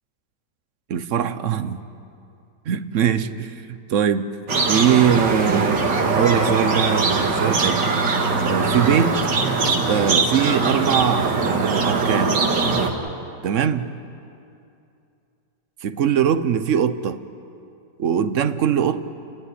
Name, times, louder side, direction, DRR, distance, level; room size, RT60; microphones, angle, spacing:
voice 1, 0.9-1.8 2.7-4.4 4.7-7.9 8.4-9.2 9.9-12.4 13.4-13.9 15.8-17.2 18.0-19.0, right 8 dB, 55° right, 11 dB, 1.0 m, -22 dB
sound 1, 4.5-12.9, right 4 dB, 75° right, 2.4 m, -21 dB
29.0 x 14.5 x 10.0 m, 2.6 s
omnidirectional pair, 1.9 m